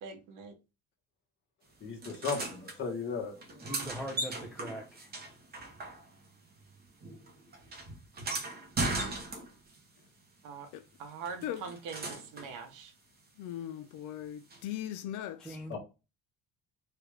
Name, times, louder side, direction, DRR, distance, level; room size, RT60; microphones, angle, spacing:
voice 1, 0.0-0.5 10.4-10.7 11.0-12.9, right 5 dB, 65° right, 0.9 m, -43 dB
voice 2, 1.8-3.6 15.7-15.8, left 5 dB, 35° left, 1.1 m, -36 dB
sound 1, 2.0-2.8 3.4-6.3 6.6-9.8 11.2-12.5 14.5-14.6, right 2 dB, 30° right, 0.8 m, -38 dB
voice 3, 3.6-5.0 15.4-15.8, equal, ahead, 0.4 m, -41 dB
voice 4, 13.4-15.8, left 11 dB, 65° left, 0.5 m, -39 dB
3.3 x 2.3 x 3.1 m
cardioid pair, 150°, 34 cm